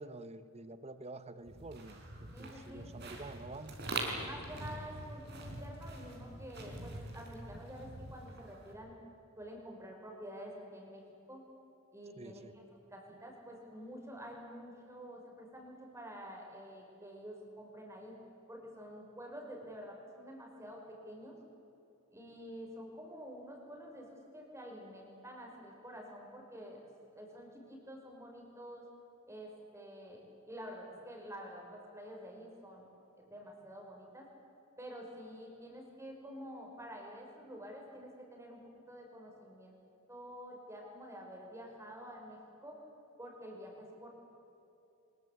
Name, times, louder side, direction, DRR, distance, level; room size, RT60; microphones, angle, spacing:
voice 1, 0.0-2.0 2.4-3.8 12.2-12.5, right 2 dB, 30° right, 12 dB, 0.9 m, -48 dB
sound 1, 1.5-8.7, right 2 dB, 55° right, 4.7 m, -44 dB
voice 2, 2.3-2.9 4.2-9.0 9.4-11.0 11.3-11.4 11.9-12.6 12.9-18.2 18.5-21.4 22.1-26.9 27.1-28.8 29.3-32.8 33.2-34.3 34.8-38.6 38.9-39.8 40.1-42.8 43.2-44.1, equal, 15° right, 0 dB, 5.3 m, -49 dB
24.0 x 22.0 x 8.5 m, 2.9 s
head